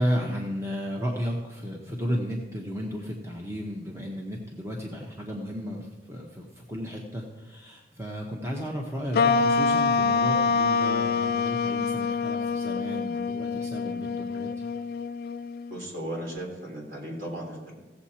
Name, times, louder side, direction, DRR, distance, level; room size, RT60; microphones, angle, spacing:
voice 1, 0.0-14.7, equal, 15° right, -1 dB, 1.0 m, -33 dB
sound 1, 9.1-15.8, left 4 dB, 60° left, 0.4 m, -26 dB
voice 2, 15.7-17.7, right 1 dB, 55° right, -2 dB, 3.7 m, -36 dB
16.5 x 7.4 x 4.4 m, 1.2 s
head